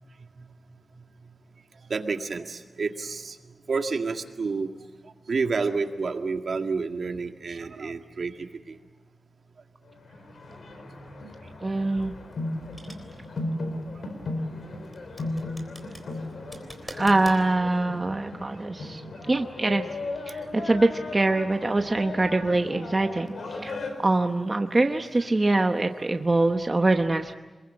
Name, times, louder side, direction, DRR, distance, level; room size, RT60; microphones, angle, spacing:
voice 1, 1.9-3.4 3.7-4.7 5.3-8.8, right 4 dB, 60° right, 5 dB, 1.9 m, -29 dB
sound 1, 9.9-23.9, left 2 dB, 70° left, 4.4 m, -36 dB
voice 2, 11.6-12.1 16.8-19.0 19.3-19.8 20.3-27.3, right 2 dB, 25° right, 5 dB, 1.0 m, -24 dB
sound 2, 11.8-17.4, equal, ahead, 3.7 m, -46 dB
27.5 x 22.0 x 8.8 m, 1.2 s
wide cardioid pair, 125°, 0 cm